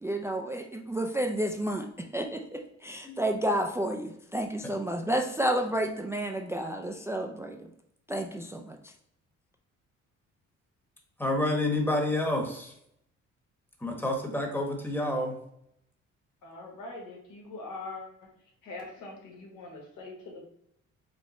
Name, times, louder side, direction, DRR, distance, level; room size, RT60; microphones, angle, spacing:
voice 1, 0.0-7.7 8.1-8.9, right 1 dB, 10° right, 0.4 m, -31 dB
voice 2, 11.2-12.7 13.8-15.4, left 1 dB, 5° left, 1.0 m, -29 dB
voice 3, 16.4-18.1 18.6-20.4, left 2 dB, 85° left, 1.4 m, -42 dB
4.8 x 2.1 x 4.0 m
cardioid pair, 90°, 30 cm